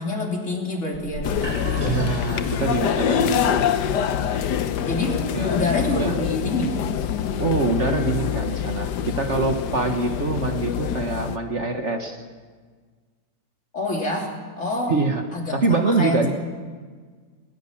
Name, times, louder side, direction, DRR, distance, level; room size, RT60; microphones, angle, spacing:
voice 1, 0.0-2.0 4.9-5.2 5.5-6.8 13.7-15.0 15.3-16.3, left 2 dB, 45° left, 0 dB, 3.5 m, -27 dB
sound 1, 0.9-6.7, right 2 dB, 85° right, 6.0 m, -40 dB
sound 2, 1.2-11.4, left 8 dB, 80° left, 1.5 m, -25 dB
voice 2, 1.8-3.6 5.3-5.6 6.0-6.2 7.4-12.2 14.9-15.2 15.5-16.3, right 3 dB, 45° right, 5 dB, 1.6 m, -24 dB
20.5 x 19.5 x 7.3 m, 1.5 s
omnidirectional pair, 1.8 m